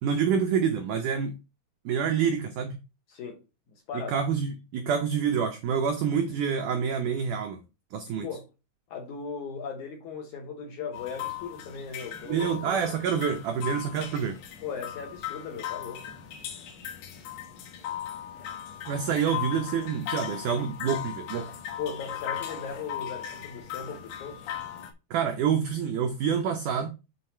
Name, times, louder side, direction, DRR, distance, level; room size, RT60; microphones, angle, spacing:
voice 1, 0.0-1.4 1.9-2.8 3.9-7.6 7.9-8.3 12.3-14.4 18.9-21.5 25.1-26.9, right 7 dB, 80° right, 1.8 m, -27 dB
voice 2, 3.1-3.4 3.7-4.1 8.2-8.5 8.9-12.8 14.6-16.1 21.8-24.4, left 6 dB, 65° left, 2.1 m, -38 dB
sound 1, 10.9-24.9, left 11 dB, 90° left, 3.2 m, -38 dB
8.0 x 3.9 x 4.3 m
omnidirectional pair, 4.6 m